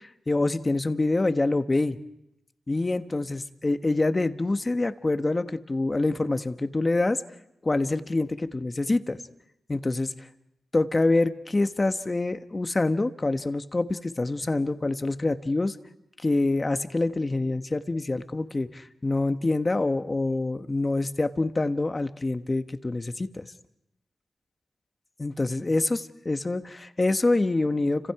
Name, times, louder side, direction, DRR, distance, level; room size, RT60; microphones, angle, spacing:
voice 1, 0.0-2.0 2.7-7.2 7.6-9.2 9.7-10.3 10.7-15.8 16.2-23.5 25.2-28.1, left 2 dB, 30° left, 9 dB, 1.3 m, -26 dB
30.0 x 26.5 x 4.8 m, 0.82 s
cardioid pair, 65°, 0 cm